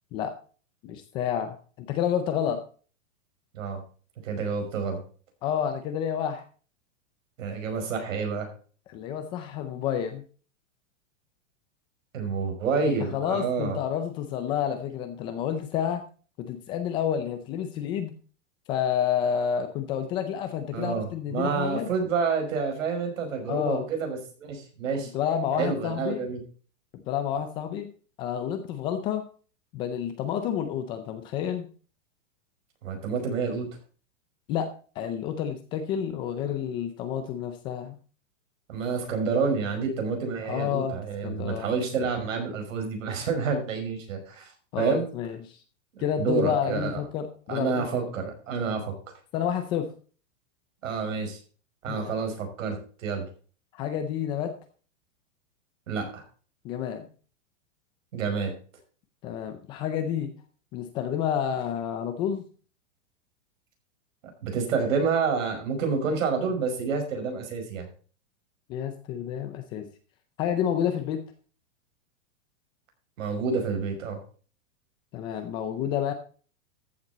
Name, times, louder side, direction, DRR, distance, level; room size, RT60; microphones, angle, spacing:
voice 1, 0.8-2.6 5.4-6.5 8.9-10.2 13.1-16.0 16.4-18.1 18.7-21.9 23.5-23.8 25.1-26.3 27.1-27.9 28.2-29.3 29.7-31.7 34.5-38.0 40.4-41.7 44.7-45.6 46.0-48.0 49.3-49.9 51.9-52.1 53.7-54.5 56.6-57.1 59.2-60.3 60.7-62.4 68.7-69.9 70.4-71.2 75.1-76.1, left 9 dB, 15° left, 8 dB, 0.4 m, -29 dB
voice 2, 4.2-5.0 7.4-8.5 12.1-13.8 20.7-25.1 25.6-26.4 32.8-33.7 38.7-44.5 44.8-45.0 45.9-47.0 47.5-48.9 50.8-51.4 51.8-53.3 55.9-56.2 58.1-58.5 64.4-67.9 73.2-74.2, right 5 dB, 80° right, 4 dB, 5.4 m, -28 dB
14.0 x 7.5 x 4.1 m, 0.39 s
supercardioid pair, 165°, 38 cm